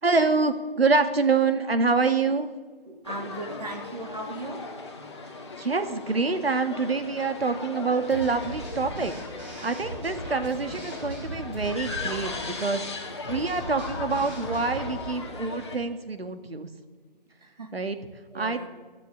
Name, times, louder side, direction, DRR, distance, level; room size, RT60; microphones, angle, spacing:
voice 1, 0.0-2.5 5.6-12.3 12.6-12.8 13.3-16.7 17.7-18.0 18.3-18.7, right 4 dB, 85° right, 9 dB, 1.9 m, -26 dB
voice 2, 2.9-4.6 17.6-17.7 18.3-18.7, right 2 dB, 45° right, 5 dB, 2.3 m, -37 dB
sound 1, 3.0-15.8, left 3 dB, 30° left, 2.0 m, -38 dB
sound 2, 8.1-15.0, right 1 dB, 10° right, 2.9 m, -39 dB
15.5 x 12.0 x 7.1 m, 1.5 s
figure-of-eight pair, 175°, 30 cm